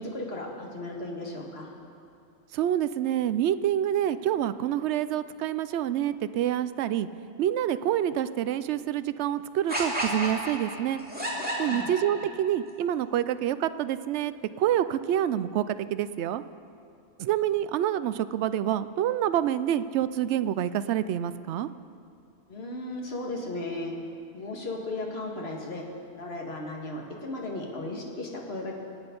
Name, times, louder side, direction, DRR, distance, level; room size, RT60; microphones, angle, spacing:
voice 1, 0.0-1.7 11.6-11.9 22.5-23.9 24.3-25.8 26.2-28.8, left 2 dB, 55° left, -1 dB, 2.0 m, -35 dB
voice 2, 2.5-7.1 7.4-11.0 11.6-16.4 17.2-21.7, right 11 dB, 70° right, 13 dB, 0.8 m, -27 dB
sound 1, 9.7-12.5, right 1 dB, 5° right, 2.6 m, -31 dB
24.0 x 8.9 x 5.3 m, 2.6 s
omnidirectional pair, 1.2 m